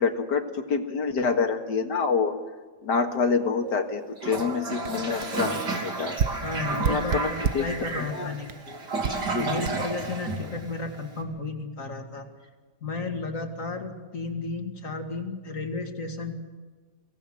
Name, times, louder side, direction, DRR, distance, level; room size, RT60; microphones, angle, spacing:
voice 1, 0.0-2.3 2.8-6.2 6.8-7.3 7.5-7.6 8.0-8.3 9.3-9.6, left 5 dB, 80° left, 6 dB, 2.4 m, -27 dB
Toilet flush, 4.2-11.1, right 3 dB, 85° right, 3.7 m, -32 dB
sound 1, 4.4-4.5 4.8-5.0 5.2-5.4 6.2-7.8 8.5-8.6 9.0-9.3 9.6-9.7, right 7 dB, 55° right, 1.2 m, -29 dB
voice 2, 6.4-8.8 9.4-12.3 12.8-16.4, left 3 dB, 50° left, 5 dB, 2.6 m, -33 dB
24.5 x 18.0 x 7.6 m, 1.4 s
omnidirectional pair, 1.8 m